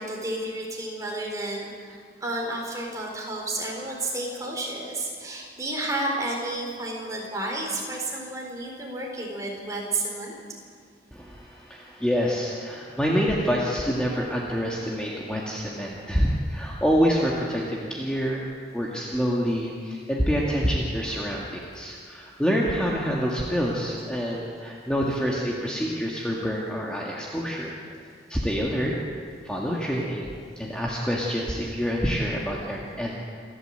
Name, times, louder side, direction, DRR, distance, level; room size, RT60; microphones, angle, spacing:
voice 1, 0.0-10.6, right 2 dB, 20° right, -1 dB, 4.2 m, -31 dB
voice 2, 11.1-18.5 18.7-27.8 28.3-28.9 29.4-30.3 30.6-33.2, equal, 5° left, -4 dB, 1.9 m, -27 dB
28.0 x 12.5 x 7.9 m, 2.1 s
head